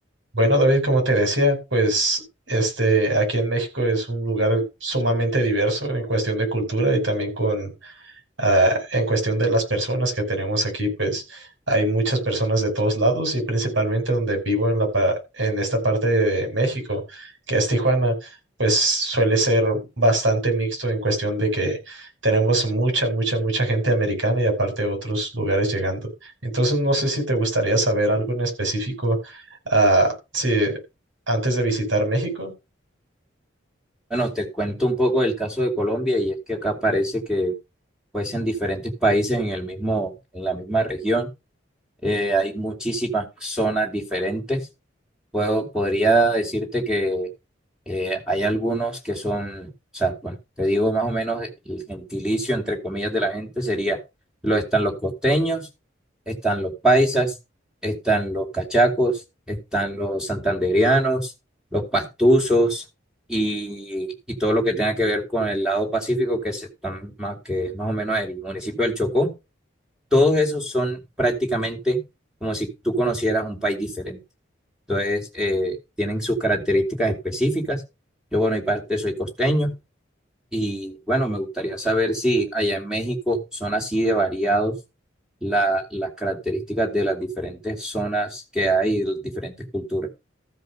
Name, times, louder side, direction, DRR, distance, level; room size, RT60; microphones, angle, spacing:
voice 1, 0.3-2.2 2.5-7.9 8.4-18.1 18.6-26.0 26.4-29.4 29.7-30.7 31.3-32.5, right 1 dB, 75° right, 4 dB, 5.7 m, -22 dB
voice 2, 34.1-37.5 38.1-41.3 42.0-44.7 45.3-47.3 47.9-54.0 54.4-55.7 56.3-57.3 57.8-59.2 59.5-61.3 61.7-62.8 63.3-69.3 70.1-72.0 72.4-74.2 74.9-77.8 78.3-79.7 80.5-84.7 85.4-90.1, right 1 dB, 5° right, -1 dB, 2.5 m, -23 dB
14.0 x 5.3 x 6.5 m, 0.26 s
head